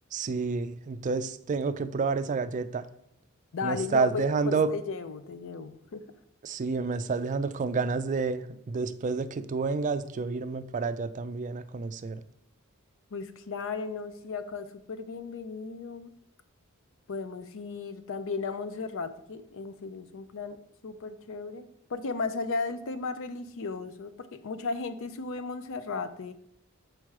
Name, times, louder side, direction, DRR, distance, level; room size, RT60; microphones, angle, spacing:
voice 1, 0.1-2.8 3.6-4.7 6.4-12.2, right 4 dB, 35° right, 11 dB, 0.3 m, -29 dB
voice 2, 3.5-6.0 13.1-16.1 17.1-26.3, left 4 dB, 65° left, 12 dB, 0.5 m, -35 dB
6.0 x 4.5 x 4.7 m, 0.74 s
head